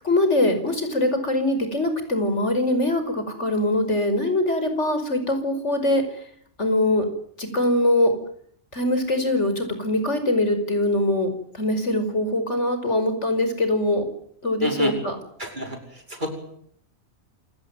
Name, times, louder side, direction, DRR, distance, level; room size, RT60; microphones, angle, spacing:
voice 1, 0.0-6.0 6.6-7.1 7.4-8.1 8.7-11.3 11.5-14.0 14.4-15.2, left 1 dB, 85° left, 8 dB, 5.8 m, -22 dB
voice 2, 14.6-14.9 15.4-15.8 16.2-16.3, right 1 dB, 45° right, 4 dB, 6.1 m, -27 dB
27.5 x 18.0 x 9.3 m, 0.68 s
omnidirectional pair, 1.2 m